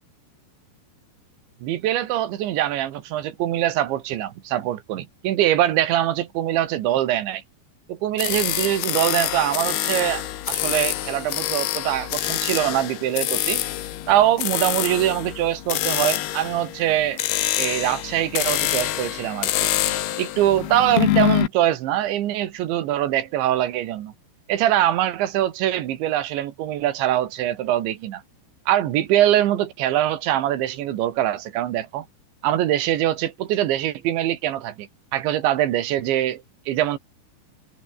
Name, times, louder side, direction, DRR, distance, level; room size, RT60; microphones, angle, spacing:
voice 1, 1.6-7.4 7.9-13.6 14.1-17.2 17.6-19.7 20.2-24.1 24.5-28.2 28.7-32.1 32.4-37.0, right 12 dB, 75° right, 4.0 m, -23 dB
sound 1, 8.2-21.5, left 13 dB, 65° left, 3.2 m, -26 dB
omnidirectional pair, 5.3 m